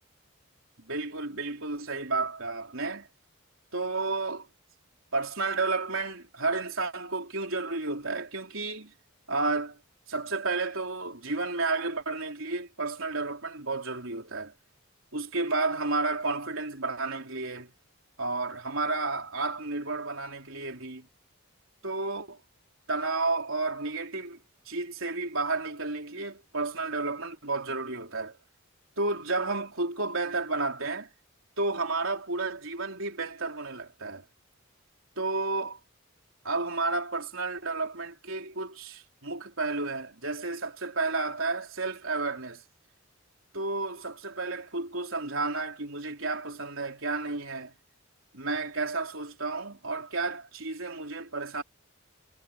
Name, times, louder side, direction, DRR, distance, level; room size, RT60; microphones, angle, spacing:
voice 1, 0.8-3.1 3.7-4.5 5.1-8.9 9.3-9.8 10.1-14.5 15.1-17.7 18.2-21.1 21.8-22.4 22.9-24.4 24.7-28.4 29.0-31.1 31.6-34.2 35.2-35.8 36.4-42.6 43.5-47.7 48.3-51.6, right 3 dB, 70° right, 3.9 m, -31 dB
head